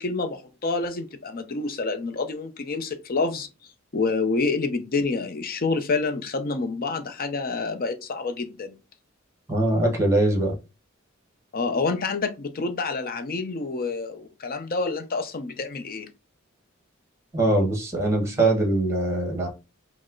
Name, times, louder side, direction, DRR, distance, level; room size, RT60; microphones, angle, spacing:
voice 1, 0.0-3.5 3.9-8.8 11.5-16.1, left 3 dB, 45° left, 0.6 m, -28 dB
voice 2, 9.5-10.6 17.3-19.5, right 2 dB, 15° right, 1.2 m, -22 dB
5.2 x 2.1 x 3.8 m
head